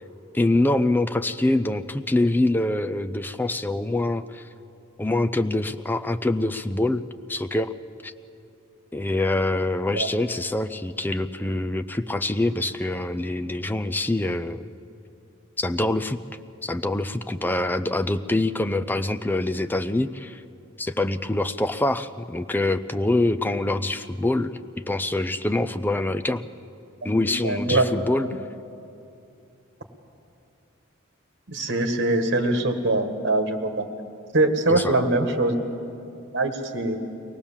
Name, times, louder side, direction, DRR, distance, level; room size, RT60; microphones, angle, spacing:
voice 1, 0.3-4.5 5.0-7.0 7.3-7.7 8.0-8.1 8.9-14.7 15.6-16.2 16.6-20.4 20.8-24.5 24.9-26.4 27.0-28.3 34.7-35.0, left 2 dB, 10° left, 10 dB, 0.4 m, -25 dB
voice 2, 27.0-27.8 31.5-33.9 34.3-35.6 36.3-37.0, right 2 dB, 60° right, 5 dB, 1.8 m, -23 dB
23.5 x 18.0 x 7.2 m, 2.7 s
head